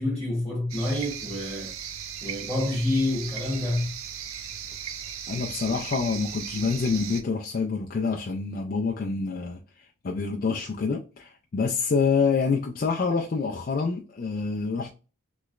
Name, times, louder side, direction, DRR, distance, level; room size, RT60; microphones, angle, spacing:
voice 1, 0.0-1.7 2.2-3.9, left 1 dB, 5° left, 1.0 m, -27 dB
sound 1, 0.7-7.2, right 8 dB, 80° right, 0.4 m, -37 dB
voice 2, 5.3-9.6 10.0-14.9, left 5 dB, 40° left, 0.3 m, -27 dB
3.1 x 3.0 x 2.4 m
head